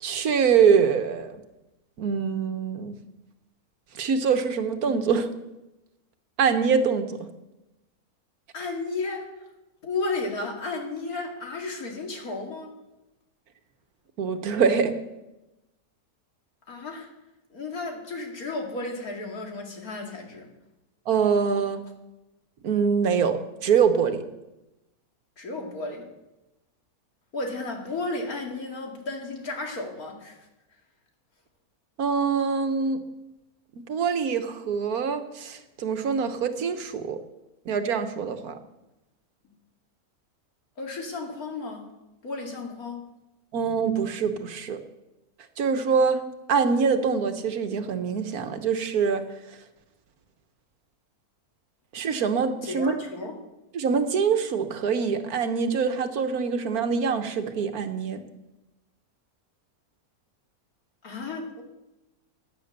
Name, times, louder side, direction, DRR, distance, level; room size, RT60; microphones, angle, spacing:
voice 1, 0.0-1.3 2.0-2.9 4.0-5.3 6.4-7.3 14.2-14.9 21.1-21.8 22.6-24.2 32.0-33.0 33.9-37.2 37.7-38.6 43.5-44.8 45.6-46.2 46.5-49.2 51.9-53.0 53.7-58.2, right 6 dB, 80° right, 8 dB, 1.6 m, -24 dB
voice 2, 8.5-9.3 9.8-12.7 16.7-17.1 17.5-20.5 25.4-26.1 27.3-30.4 40.8-41.9 42.2-43.1 52.6-53.4 61.0-61.6, left 3 dB, 75° left, 1 dB, 2.8 m, -33 dB
16.5 x 9.9 x 6.7 m, 0.99 s
omnidirectional pair, 1.6 m